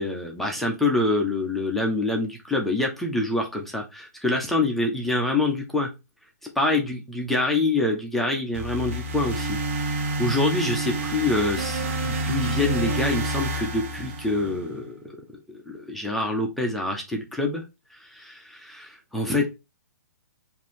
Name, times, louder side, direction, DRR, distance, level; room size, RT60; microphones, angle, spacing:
voice 1, 0.0-5.9 6.6-15.0 15.5-17.6 18.0-19.5, left 2 dB, ahead, 0 dB, 0.6 m, -26 dB
sound 1, 8.5-14.7, right 1 dB, 50° right, 1.0 m, -28 dB
4.8 x 2.7 x 3.6 m, 0.24 s
hypercardioid pair, 145°, 9 cm